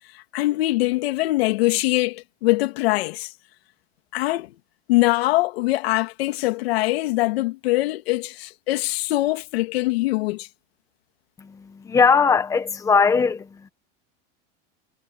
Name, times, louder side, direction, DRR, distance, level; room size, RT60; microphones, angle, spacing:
voice 1, 0.1-3.3 4.1-4.5 4.9-10.5, left 19 dB, 80° left, 2.7 m, -23 dB
voice 2, 11.4-13.7, left 5 dB, 10° left, 1.3 m, -20 dB
supercardioid pair, 175°, 30 cm